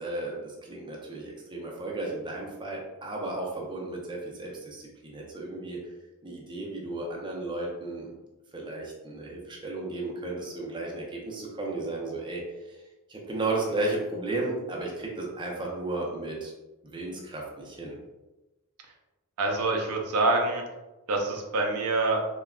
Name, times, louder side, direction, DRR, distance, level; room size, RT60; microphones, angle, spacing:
voice 1, 0.0-5.8 6.2-8.1 8.5-12.8 13.1-16.5 16.8-18.0, right 2 dB, 20° right, -2 dB, 0.5 m, -34 dB
voice 2, 19.4-20.6 21.1-22.2, right 2 dB, 80° right, 1 dB, 0.5 m, -26 dB
3.5 x 2.2 x 2.2 m, 1.1 s
head